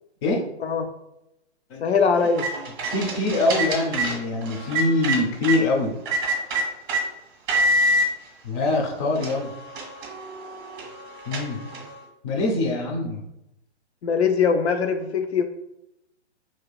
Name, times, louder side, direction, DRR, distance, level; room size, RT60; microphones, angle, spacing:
voice 1, 1.8-2.5 14.0-15.4, left 5 dB, 65° left, 7 dB, 0.5 m, -21 dB
sound 1, 2.1-5.6 6.1-7.0 7.5-8.1 8.7-8.8 9.2-12.0, right 1 dB, 40° right, 1.2 m, -26 dB
voice 2, 2.5-6.0 8.4-9.5 11.3-11.6 12.2-13.2, left 2 dB, 25° left, 1 dB, 0.6 m, -24 dB
4.4 x 2.9 x 2.4 m, 0.87 s
hypercardioid pair, 130°, 35 cm